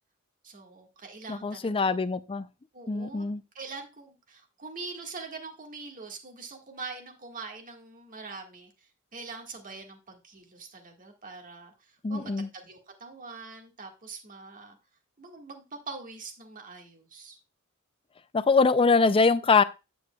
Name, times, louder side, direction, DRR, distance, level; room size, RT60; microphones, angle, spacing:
voice 1, 0.4-2.0 2.7-3.3 3.5-14.8 15.2-17.4 18.4-18.5, right 4 dB, 40° right, 1.7 m, -43 dB
voice 2, 1.3-2.5 2.9-3.4 12.0-12.5 18.3-19.6, left 4 dB, 25° left, 0.4 m, -23 dB
9.4 x 7.9 x 2.3 m
head